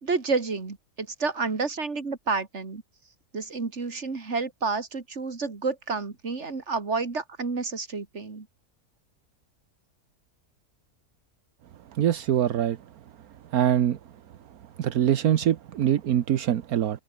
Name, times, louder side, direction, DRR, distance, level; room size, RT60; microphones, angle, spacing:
voice 1, 0.0-2.8 3.3-8.5, right 4 dB, 50° right, 2.8 m, -30 dB
voice 2, 11.9-12.8 13.5-14.0 14.8-17.0, right 10 dB, 75° right, 1.4 m, -23 dB
omnidirectional pair, 1.6 m